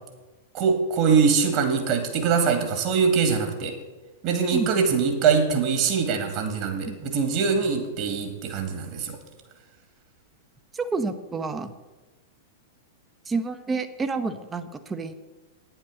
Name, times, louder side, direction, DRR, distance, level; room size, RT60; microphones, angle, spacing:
voice 1, 0.5-3.7 4.2-9.2, right 5 dB, 40° right, 5 dB, 2.4 m, -23 dB
voice 2, 4.5-4.9 6.8-7.0 10.7-11.7 13.3-15.1, right 4 dB, 15° right, 10 dB, 0.9 m, -29 dB
9.7 x 9.0 x 6.4 m, 1.2 s
figure-of-eight pair, 95°, 0 cm